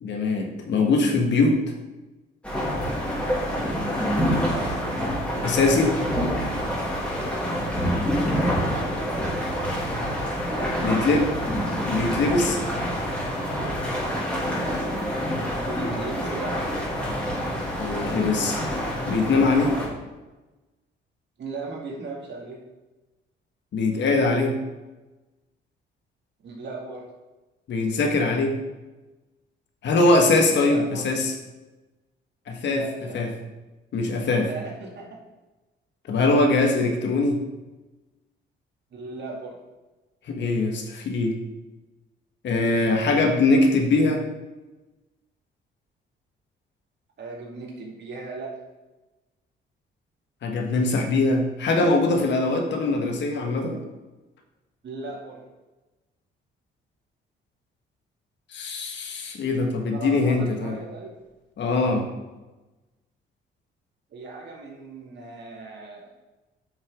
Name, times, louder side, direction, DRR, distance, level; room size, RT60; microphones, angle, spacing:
voice 1, 0.0-1.6 5.4-5.9 10.8-11.3 11.8-12.6 17.8-18.6 19.1-19.7 23.7-24.6 27.7-28.5 29.8-31.3 32.5-32.8 33.1-33.3 33.9-34.5 36.1-37.4 40.3-41.4 42.4-44.2 50.4-53.8 58.5-60.7 61.6-62.1, left 3 dB, 65° left, 3 dB, 1.6 m, -22 dB
sound 1, 2.4-19.9, equal, 5° left, 2.9 m, -27 dB
voice 2, 4.0-4.8 8.7-9.8 10.4-11.3 15.3-16.6 21.4-22.6 26.4-27.1 30.6-31.1 32.6-33.2 34.4-35.2 36.6-36.7 38.9-39.6 47.2-48.6 54.8-55.5 59.9-61.1 64.1-66.1, right 3 dB, 60° right, -1 dB, 2.3 m, -37 dB
8.9 x 6.4 x 3.7 m, 1.1 s
cardioid pair, 90°, 20 cm